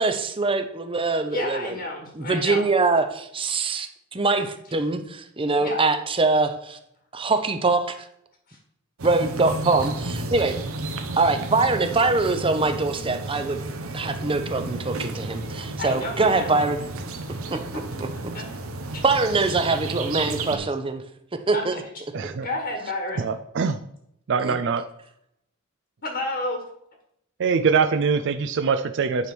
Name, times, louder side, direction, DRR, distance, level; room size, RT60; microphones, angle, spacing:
voice 1, 0.0-1.8 2.1-6.8 7.1-7.9 9.0-10.6 11.2-13.6 13.9-16.8 17.5-17.6 18.0-18.1 19.0-21.0 21.3-21.7 22.2-22.3 24.4-24.6, right 3 dB, 25° right, 8 dB, 0.7 m, -23 dB
voice 2, 1.3-2.6 5.6-5.8 8.5-8.6 15.8-16.7 18.1-18.4 21.5-21.8 22.4-23.2 26.0-26.6, left 2 dB, 50° left, 2 dB, 1.4 m, -31 dB
sound 1, 9.0-20.6, right 2 dB, 80° right, 0.9 m, -33 dB
voice 3, 22.1-22.5 23.2-23.8 24.3-24.8 27.4-29.3, right 5 dB, 60° right, 9 dB, 0.4 m, -23 dB
9.8 x 3.4 x 6.1 m, 0.76 s
head